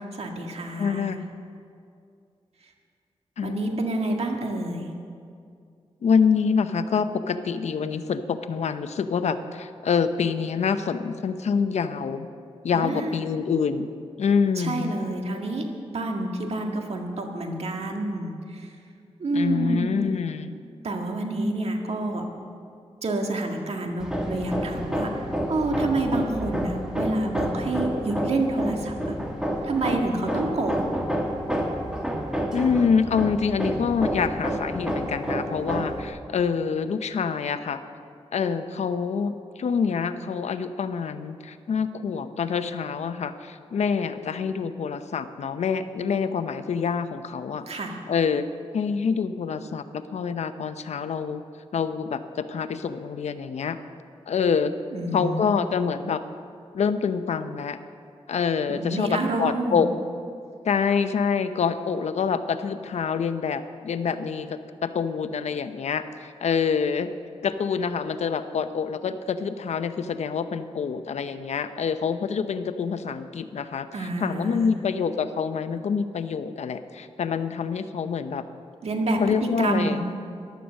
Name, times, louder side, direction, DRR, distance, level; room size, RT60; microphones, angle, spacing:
voice 1, 0.2-1.1 3.4-4.9 12.7-13.2 14.6-18.7 19.2-20.0 20.8-22.3 23.0-25.1 25.5-29.1 29.6-30.8 47.7-48.0 54.9-55.6 58.7-59.8 73.9-74.7 78.8-80.0, right 2 dB, 70° right, 2 dB, 1.9 m, -28 dB
voice 2, 0.8-1.2 3.4-3.7 6.0-12.3 12.6-13.9 14.2-15.0 19.3-20.6 32.5-37.8 38.3-47.7 48.1-48.4 48.7-51.4 51.7-53.8 54.3-54.7 55.1-56.2 56.7-57.8 58.3-59.9 60.7-67.1 67.4-78.4 79.2-80.0, left 6 dB, 85° left, 10 dB, 0.7 m, -26 dB
Hammer, 24.0-36.1, equal, 5° right, 2.2 m, -29 dB
15.0 x 11.5 x 6.4 m, 2.4 s
cardioid pair, 75°, 11 cm